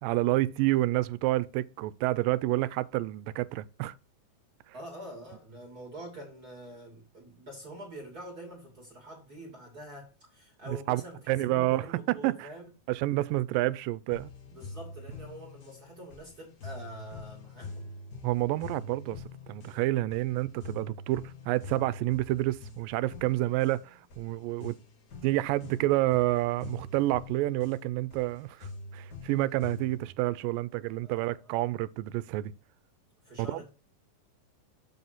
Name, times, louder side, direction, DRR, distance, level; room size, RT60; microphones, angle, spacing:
voice 1, 0.0-3.9 10.7-11.0 11.3-12.5 12.9-14.3 18.2-24.8 25.2-32.5 33.4-33.7, right 17 dB, 90° right, 2.2 m, -29 dB
voice 2, 4.7-12.7 14.5-18.0 20.5-20.8 31.0-31.5 33.2-33.7, right 1 dB, 30° right, 2.3 m, -46 dB
sound 1, 14.1-30.1, left 3 dB, 75° left, 0.9 m, -45 dB
7.6 x 4.0 x 5.8 m
omnidirectional pair, 3.9 m